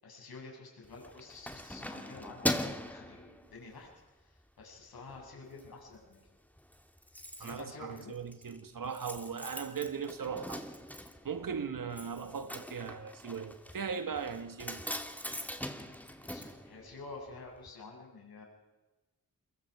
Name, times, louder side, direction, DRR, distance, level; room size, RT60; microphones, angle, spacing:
voice 1, 0.0-3.9 4.6-6.2 7.4-8.1 16.2-18.4, left 3 dB, 75° left, 7.5 m, -49 dB
Keys jangling, 0.8-3.9 4.4-4.6 5.0-5.7 5.9-6.0 6.3-6.4 6.6-17.4 17.7-17.8, equal, 5° left, 2.6 m, -41 dB
voice 2, 7.4-10.7 11.2-14.8, right 6 dB, 60° right, 1.8 m, -38 dB
28.5 x 22.5 x 5.0 m
supercardioid pair, 45°, 37 cm